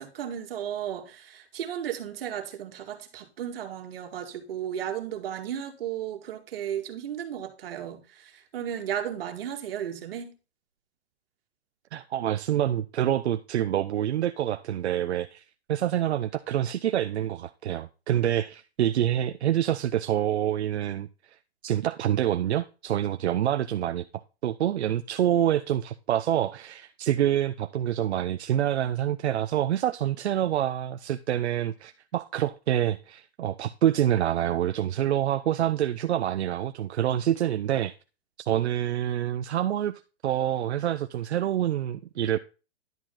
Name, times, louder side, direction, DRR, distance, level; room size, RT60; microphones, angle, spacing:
voice 1, 0.0-10.3, right 10 dB, 60° right, 2.1 m, -34 dB
voice 2, 11.9-15.4 15.7-21.1 21.6-24.0 24.4-37.9 38.5-42.4, right 11 dB, 85° right, 0.7 m, -26 dB
11.0 x 5.0 x 3.8 m
hypercardioid pair, 160°, 32 cm